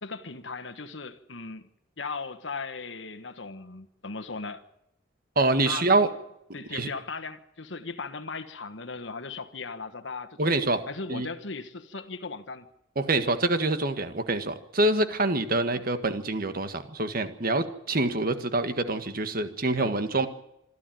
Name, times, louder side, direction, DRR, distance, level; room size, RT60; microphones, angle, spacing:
voice 1, 0.0-4.6 5.6-6.1 6.5-10.5 10.9-12.7 15.7-15.8 19.8-19.9, left 4 dB, 65° left, 1.4 m, -38 dB
voice 2, 5.4-6.1 6.7-6.9 10.4-10.8 11.1-11.3 13.0-20.3, right 2 dB, 50° right, 1.7 m, -26 dB
26.0 x 12.0 x 9.2 m
head